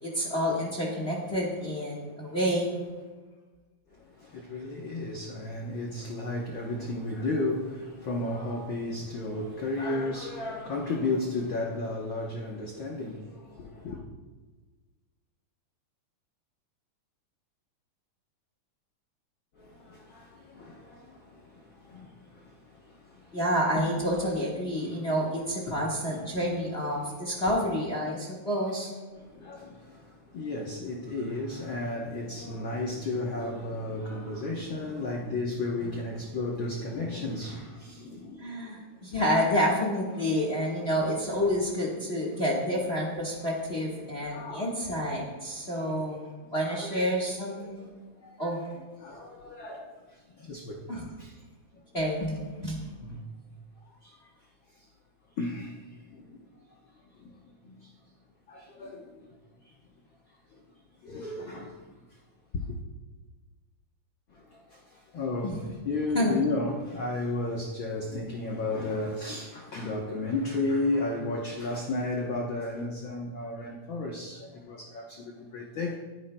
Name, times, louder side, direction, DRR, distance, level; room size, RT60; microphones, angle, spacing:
voice 1, 0.0-2.7 23.3-28.9 38.4-46.2 46.5-47.9 48.4-48.6 50.9-51.0 51.9-52.8 65.4-65.5 66.1-66.4, equal, 35° left, 1.0 m, -29 dB
voice 2, 3.9-14.0 19.5-23.4 24.8-25.0 25.7-25.8 26.1-26.5 26.9-27.4 29.1-38.7 44.2-44.7 45.8-45.9 46.4-47.2 47.6-47.9 48.2-50.8 51.2-51.3 53.0-53.2 54.0-54.3 54.8-54.9 55.4-56.8 57.1-57.9 58.5-59.3 59.6-59.7 60.5-60.6 61.0-62.2 62.5-62.8 64.3-76.0, left 2 dB, 70° left, 1.2 m, -34 dB
19.5 x 10.0 x 2.2 m
omnidirectional pair, 3.6 m